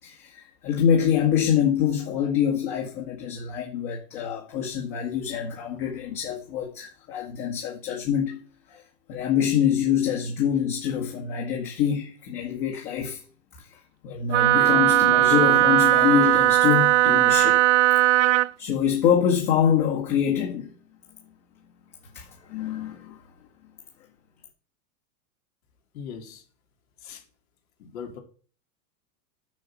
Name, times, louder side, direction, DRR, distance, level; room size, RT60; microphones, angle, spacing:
voice 1, 0.0-8.4 8.7-8.8 9.1-13.2 13.6-17.6 18.6-20.8 22.1-23.2, left 8 dB, 40° left, 2.0 m, -25 dB
Wind instrument woodwind instrument, 14.3-18.5, right 16 dB, 55° right, 0.5 m, -18 dB
voice 2, 25.9-26.4 27.0-27.2 27.8-28.2, left 7 dB, 65° left, 2.9 m, -39 dB
7.5 x 6.5 x 7.4 m
supercardioid pair, 170°, 45 cm